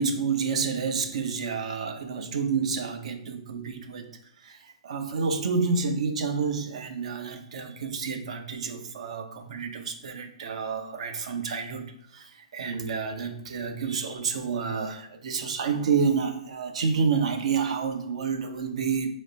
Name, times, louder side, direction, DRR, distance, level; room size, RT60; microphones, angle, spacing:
voice 1, 0.0-4.1 4.4-4.6 4.8-19.1, right 5 dB, 70° right, 7 dB, 0.6 m, -29 dB
4.1 x 3.3 x 2.7 m, 0.74 s
hypercardioid pair, 145°, 4 cm